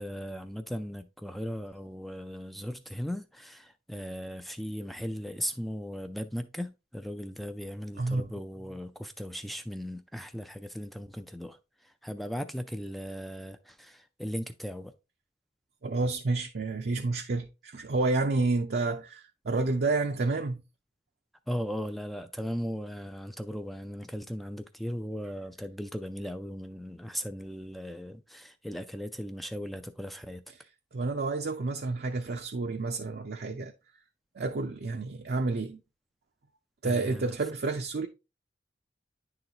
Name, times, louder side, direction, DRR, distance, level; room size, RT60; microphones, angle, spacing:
voice 1, 0.0-14.9 21.5-30.4 36.8-37.3, equal, ahead, 0.3 m, -37 dB
voice 2, 8.0-8.3 15.8-20.6 30.9-33.7 34.3-35.8 36.8-38.1, right 3 dB, 60° right, 0.5 m, -29 dB
9.7 x 3.9 x 2.8 m
head